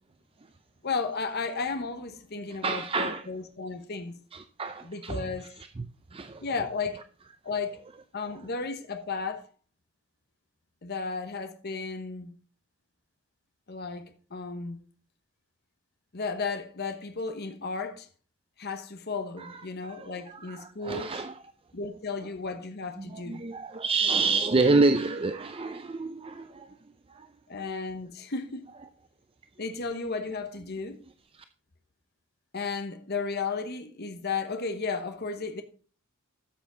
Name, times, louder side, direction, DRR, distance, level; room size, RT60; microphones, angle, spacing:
voice 1, 0.8-4.2 4.8-5.5 6.4-7.0 7.4-7.8 8.1-9.5 10.8-12.3 13.7-14.8 16.1-18.1 18.6-21.2 21.7-23.4 27.5-28.7 29.6-31.0 32.5-35.6, left 4 dB, 50° left, 1.0 m, -34 dB
voice 2, 2.5-3.2 4.3-5.5 5.8-6.4 19.4-19.6 19.9-21.4 23.0-26.7 27.1-27.3 31.3-31.4, right 3 dB, 25° right, 0.5 m, -28 dB
13.0 x 7.0 x 3.9 m
head